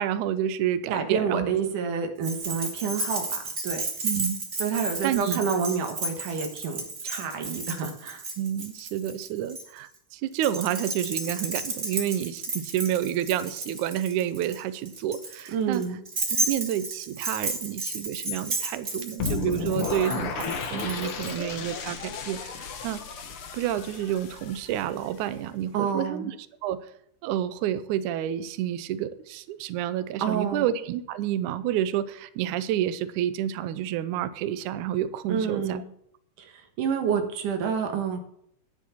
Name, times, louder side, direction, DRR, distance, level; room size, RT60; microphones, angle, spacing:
voice 1, 0.0-1.5 4.0-4.5 5.0-5.4 8.4-15.8 16.3-23.0 23.5-26.4 26.6-26.8 27.2-35.8, right 11 dB, 90° right, 12 dB, 1.7 m, -29 dB
voice 2, 0.9-3.8 4.6-8.2 15.5-16.0 25.7-26.3 30.2-30.7 35.3-35.8 36.4-38.2, right 6 dB, 60° right, 5 dB, 2.7 m, -28 dB
Keys jangling, 2.2-9.6 10.4-21.4, right 2 dB, 30° right, 1.7 m, -33 dB
sound 1, 19.2-25.2, left 5 dB, 70° left, 1.3 m, -34 dB
10.5 x 10.0 x 4.4 m, 0.70 s
omnidirectional pair, 4.4 m